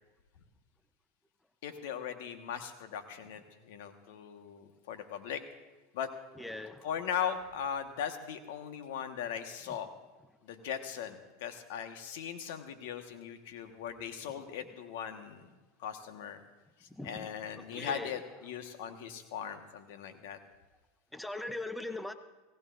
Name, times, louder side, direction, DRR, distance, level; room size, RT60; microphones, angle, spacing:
voice 1, 1.6-5.4 5.9-6.1 6.8-9.9 10.4-15.5 15.8-16.4 16.8-20.4, left 8 dB, 75° left, 6 dB, 1.5 m, -39 dB
voice 2, 6.4-6.9 17.0-17.3 17.7-18.1 21.1-22.1, left 2 dB, 5° left, 9 dB, 0.7 m, -40 dB
23.0 x 17.0 x 2.6 m, 1.2 s
supercardioid pair, 120°, 0 cm